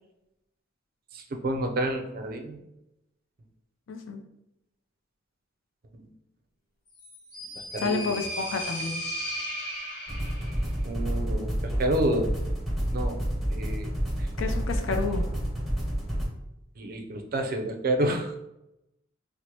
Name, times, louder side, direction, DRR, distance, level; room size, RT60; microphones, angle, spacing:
voice 1, 1.1-2.6 5.9-6.1 7.7-8.2 10.8-12.4 12.9-13.2 13.5-13.9 14.2-14.3 16.8-18.4, right 1 dB, 45° right, 4 dB, 0.4 m, -29 dB
voice 2, 3.9-4.2 7.8-9.0 14.4-15.2, left 4 dB, 65° left, 5 dB, 0.5 m, -30 dB
sound 1, 6.9-10.7, equal, 50° left, 0.9 m, -35 dB
sound 2, 10.1-16.2, equal, ahead, 0.7 m, -29 dB
4.5 x 2.0 x 2.8 m, 0.87 s
head